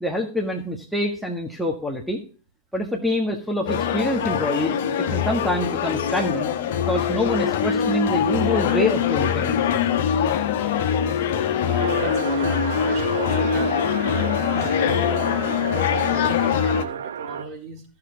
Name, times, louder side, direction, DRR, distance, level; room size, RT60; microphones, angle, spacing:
voice 1, 0.0-2.2 2.7-6.5 6.8-9.6, left 1 dB, ahead, -1 dB, 1.6 m, -26 dB
sound 1, 3.7-16.8, left 8 dB, 55° left, 1.3 m, -23 dB
voice 2, 11.6-17.8, right 4 dB, 45° right, -1 dB, 3.8 m, -36 dB
sound 2, 11.8-17.4, right 8 dB, 70° right, 0.6 m, -32 dB
14.5 x 6.8 x 4.0 m, 0.38 s
figure-of-eight pair, 95°, 0 cm